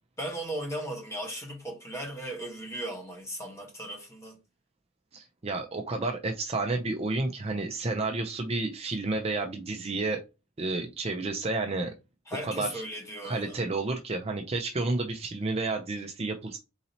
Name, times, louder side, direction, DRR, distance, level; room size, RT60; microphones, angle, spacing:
voice 1, 0.2-4.4 12.3-13.6, right 1 dB, 15° left, 1.1 m, -37 dB
voice 2, 5.1-10.2 10.6-11.9 12.4-12.8 13.2-16.6, right 3 dB, 30° right, 0.4 m, -31 dB
3.9 x 2.8 x 4.2 m
head